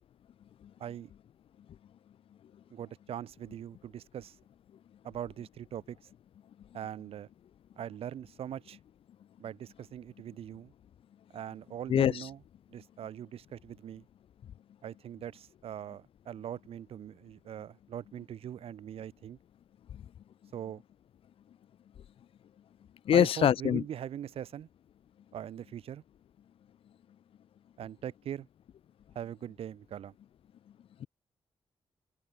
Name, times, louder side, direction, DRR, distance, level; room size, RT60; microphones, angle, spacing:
voice 1, 0.8-1.1 2.7-4.4 5.0-6.1 6.7-7.3 7.8-8.8 9.4-10.7 11.3-12.4 12.7-14.1 14.8-19.4 20.5-20.8 23.1-24.7 25.3-26.0 27.8-28.5 29.1-30.1, right 10 dB, 85° right, 6.3 m, -41 dB
voice 2, 23.1-23.8, left 10 dB, 70° left, 1.1 m, -23 dB
open air
wide cardioid pair, 150°, 10 cm